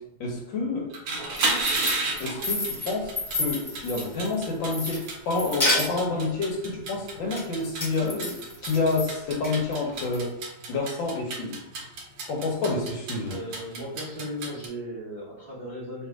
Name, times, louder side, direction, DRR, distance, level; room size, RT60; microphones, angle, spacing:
voice 1, 0.2-0.9 2.2-8.4 8.6-10.3 10.7-11.6 12.3-13.4, left 3 dB, 65° left, 0 dB, 1.4 m, -28 dB
sound 1, 0.8-14.7, right 3 dB, 70° right, 1.5 m, -33 dB
sound 2, 1.1-4.3 4.7-6.2 7.4-9.1 9.4-10.2, left 1 dB, 30° left, 0.3 m, -30 dB
voice 2, 13.2-16.1, equal, 30° right, -8 dB, 1.0 m, -36 dB
3.3 x 3.2 x 4.6 m, 0.82 s
omnidirectional pair, 2.4 m